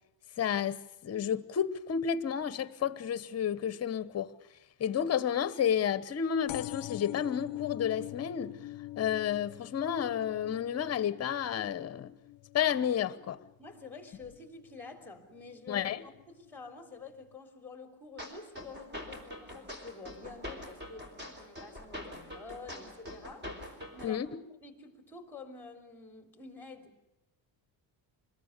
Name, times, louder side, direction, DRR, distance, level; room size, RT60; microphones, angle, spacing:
voice 1, 0.4-0.8 1.0-4.3 4.8-8.5 9.0-12.1 12.5-13.4 15.7-16.0 24.0-24.4, left 8 dB, 35° left, 1.0 m, -31 dB
sound 1, 6.5-13.7 14.2-14.7 15.5-15.6 15.8-15.9 16.1-16.2, left 16 dB, 65° left, 0.7 m, -44 dB
voice 2, 13.6-21.1 21.4-24.2 24.6-27.1, left 4 dB, 5° left, 3.4 m, -48 dB
sound 2, 18.2-24.2, left 1 dB, 25° right, 4.1 m, -44 dB
26.0 x 21.5 x 6.7 m
cardioid pair, 155°, 44 cm